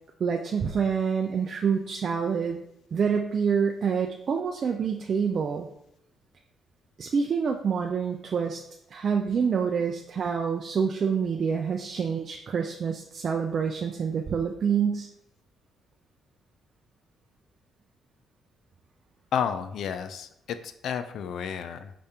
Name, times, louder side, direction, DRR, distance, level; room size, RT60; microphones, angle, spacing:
voice 1, 0.2-2.6 2.9-5.7 7.0-8.6 8.9-15.1, right 6 dB, 50° right, 2 dB, 0.4 m, -27 dB
voice 2, 19.3-21.9, left 8 dB, 70° left, 10 dB, 0.4 m, -31 dB
5.1 x 2.7 x 3.4 m, 0.76 s
cardioid pair, 90°, 0 cm